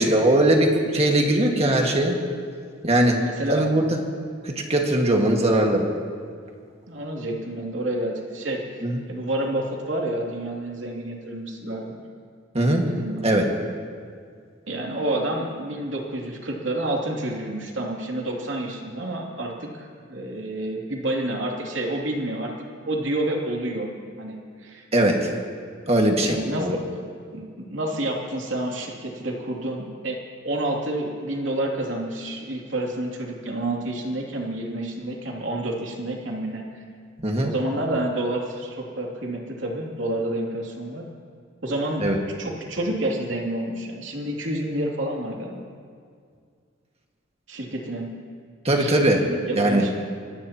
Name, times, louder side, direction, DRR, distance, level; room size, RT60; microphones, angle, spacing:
voice 1, 0.0-2.2 2.8-3.2 3.5-4.0 4.4-5.9 8.8-9.0 12.5-12.8 13.2-13.5 24.9-25.3 25.9-26.8 37.2-37.5 42.0-42.2 48.7-49.3 49.5-49.8, right 1 dB, 35° right, 1 dB, 1.8 m, -20 dB
voice 2, 3.2-3.6 6.9-8.8 9.1-12.0 12.8-13.2 14.7-22.5 22.9-23.9 24.2-24.3 24.6-24.9 26.2-26.7 27.3-30.2 30.4-36.6 37.4-41.0 41.6-42.0 42.4-45.6 47.5-48.1 48.8-49.9, right 1 dB, 75° right, -1 dB, 2.8 m, -29 dB
25.5 x 18.0 x 3.0 m, 2.2 s
head